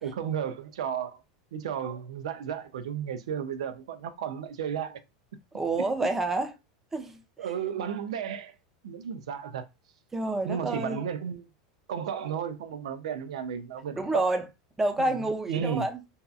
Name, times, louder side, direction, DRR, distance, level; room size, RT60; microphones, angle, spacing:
voice 1, 0.0-1.2 1.5-5.0 7.4-8.5 8.8-9.6 10.4-11.5 11.9-14.3 15.0-15.9, right 8 dB, 90° right, 0.4 m, -33 dB
voice 2, 5.5-6.5 6.9-7.2 10.1-11.0 13.9-14.4 14.8-16.0, right 2 dB, 10° right, 0.4 m, -28 dB
2.7 x 2.3 x 2.3 m
supercardioid pair, 125°, 3 cm